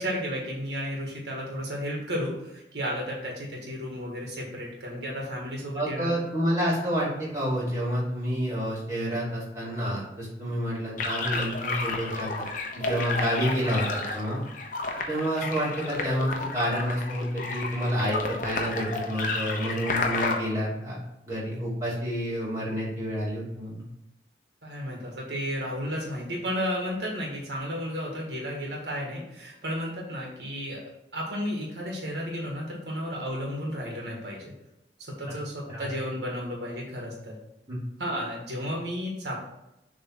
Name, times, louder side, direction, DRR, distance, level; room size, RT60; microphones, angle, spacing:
voice 1, 0.0-6.2 24.6-30.8 31.1-34.5 35.0-37.3 38.0-39.4, equal, 75° right, -1 dB, 1.8 m, -33 dB
voice 2, 5.7-7.1 7.3-12.4 12.7-14.4 15.1-21.0 21.3-23.8 35.7-35.9 37.7-37.8, equal, 20° right, -8 dB, 2.8 m, -29 dB
sound 1, 11.0-20.4, left 3 dB, 45° left, 0.9 m, -31 dB
7.1 x 3.6 x 6.2 m, 0.89 s
head